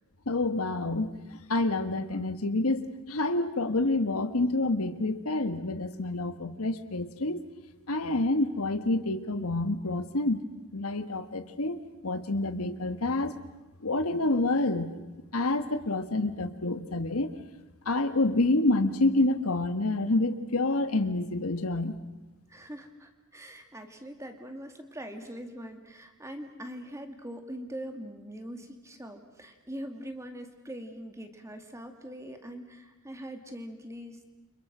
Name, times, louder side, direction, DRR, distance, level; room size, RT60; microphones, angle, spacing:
voice 1, 0.3-7.4 7.9-10.4 10.7-13.3 13.8-14.9 15.3-17.3 17.8-21.9, left 2 dB, 75° left, 10 dB, 1.5 m, -28 dB
voice 2, 22.5-34.2, equal, 15° right, 6 dB, 2.3 m, -42 dB
29.5 x 26.0 x 6.2 m, 1.1 s
head